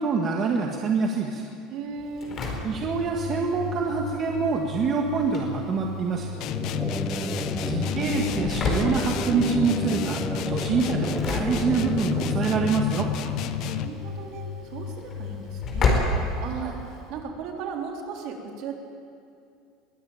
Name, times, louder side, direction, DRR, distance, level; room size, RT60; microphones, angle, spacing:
voice 1, 0.0-1.5 2.6-6.5 7.7-10.2 10.5-13.1 16.6-16.7, right 5 dB, 35° right, 1 dB, 1.7 m, -26 dB
voice 2, 1.7-2.4 6.6-7.3 13.2-16.0 16.4-18.8, right 6 dB, 55° right, 1 dB, 3.7 m, -37 dB
Engine / Slam, 2.0-17.1, left 3 dB, 35° left, 4.8 m, -32 dB
sound 1, 6.3-13.9, right 3 dB, 10° right, 0.7 m, -33 dB
sound 2, 6.4-14.1, left 10 dB, 50° left, 1.1 m, -30 dB
22.5 x 16.0 x 9.1 m, 2.5 s
supercardioid pair, 140°, 0 cm